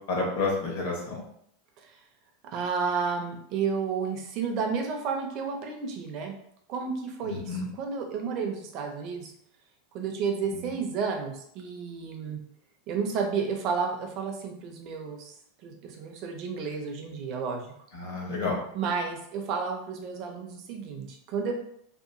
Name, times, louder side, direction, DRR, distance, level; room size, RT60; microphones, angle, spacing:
voice 1, 0.1-1.2 7.2-7.7 17.9-18.6, left 3 dB, 60° left, -2 dB, 1.0 m, -30 dB
voice 2, 2.4-6.3 6.7-9.3 9.9-12.4 12.9-15.3 15.6-17.7 18.7-21.5, right 5 dB, 30° right, 3 dB, 0.4 m, -31 dB
2.8 x 2.2 x 2.5 m, 0.69 s
supercardioid pair, 175°, 0 cm